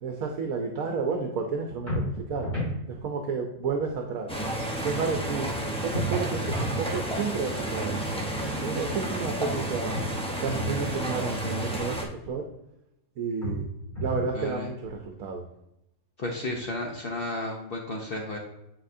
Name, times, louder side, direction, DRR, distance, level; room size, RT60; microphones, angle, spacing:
voice 1, 0.0-2.5 2.9-4.3 4.8-5.5 5.8-8.1 8.6-9.9 10.4-12.5 13.2-13.7 14.0-15.4, right 5 dB, 75° right, 3 dB, 1.1 m, -31 dB
sound 1, 1.9-2.8 5.9-6.8 9.9-10.8 13.4-14.3, equal, 30° left, 2.7 m, -32 dB
sound 2, 4.3-12.1, right 1 dB, 5° left, 0.6 m, -31 dB
voice 2, 14.3-14.7 16.2-18.4, left 2 dB, 50° left, 0 dB, 0.8 m, -33 dB
9.0 x 4.2 x 2.6 m, 0.84 s
omnidirectional pair, 1.5 m